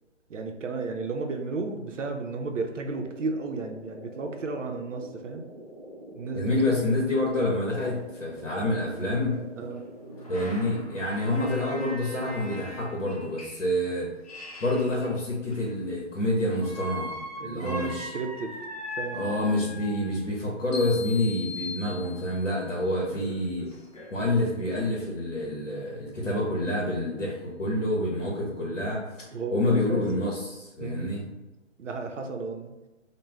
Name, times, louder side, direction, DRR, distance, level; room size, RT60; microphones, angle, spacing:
voice 1, 0.3-5.5 6.1-6.8 9.6-9.9 17.4-18.6 19.0-19.2 29.3-30.0 30.8-31.3 31.8-32.7, right 3 dB, 80° right, 4 dB, 0.6 m, -33 dB
sound 1, 2.9-10.4, right 1 dB, 25° right, 0.4 m, -45 dB
voice 2, 6.3-9.4 10.3-14.1 14.6-17.1 17.4-18.1 19.1-23.7 24.1-29.0 29.5-31.2, left 1 dB, 90° left, -3 dB, 0.8 m, -27 dB
sound 2, 7.6-7.7 8.3-8.4 9.7-15.9 16.6-20.3 22.0-22.1 22.6-22.7 23.0-24.1, equal, 35° left, 0.4 m, -41 dB
sound 3, 20.7-22.7, left 5 dB, 60° left, 1.1 m, -39 dB
2.3 x 2.1 x 3.2 m, 1.1 s
figure-of-eight pair, 140°, 37 cm